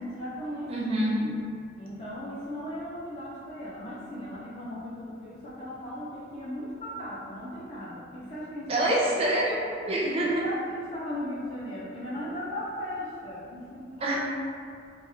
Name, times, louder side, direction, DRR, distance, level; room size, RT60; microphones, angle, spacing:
voice 1, 0.0-0.7 1.2-1.4 1.8-8.9 9.1-9.3 10.0-13.9, left 1 dB, 35° left, -8 dB, 0.4 m, -37 dB
voice 2, 0.7-1.2 8.7-10.4 14.0-14.2, right 1 dB, 30° right, -4 dB, 0.4 m, -26 dB
2.9 x 2.3 x 2.6 m, 2.3 s
head